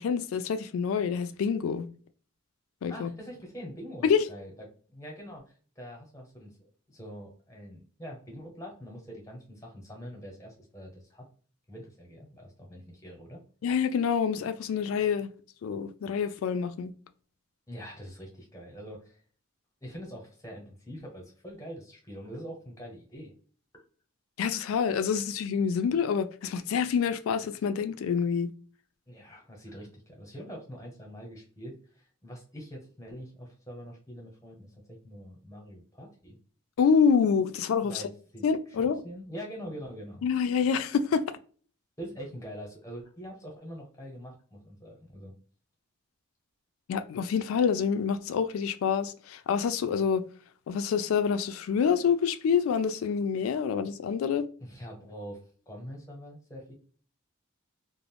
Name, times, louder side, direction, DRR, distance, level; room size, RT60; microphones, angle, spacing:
voice 1, 0.0-1.9 2.8-3.1 4.0-4.2 13.6-15.3 15.6-16.9 24.4-28.5 36.8-38.0 38.4-39.0 40.2-41.3 46.9-50.2 50.7-54.5, left 6 dB, 80° left, 0.3 m, -27 dB
voice 2, 2.9-4.5 4.9-6.6 6.9-11.3 11.7-13.4 17.7-19.2 19.8-23.3 29.1-36.4 37.8-40.2 42.0-45.3 54.6-55.4 55.7-56.7, equal, 15° left, 0.8 m, -44 dB
2.4 x 2.0 x 3.3 m
head